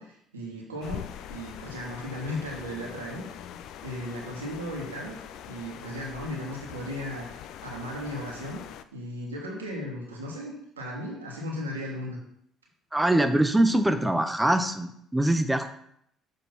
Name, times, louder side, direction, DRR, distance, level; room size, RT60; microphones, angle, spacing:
voice 1, 0.0-3.2 3.8-5.2 5.5-7.3 7.6-8.6 8.9-12.2, left 1 dB, 90° right, -1 dB, 1.3 m, -36 dB
sound 1, 0.8-8.8, left 10 dB, 65° left, 0.3 m, -43 dB
voice 2, 12.9-15.7, right 1 dB, 10° right, 9 dB, 0.8 m, -23 dB
6.8 x 3.2 x 5.6 m, 0.71 s
hypercardioid pair, 55°, 0 cm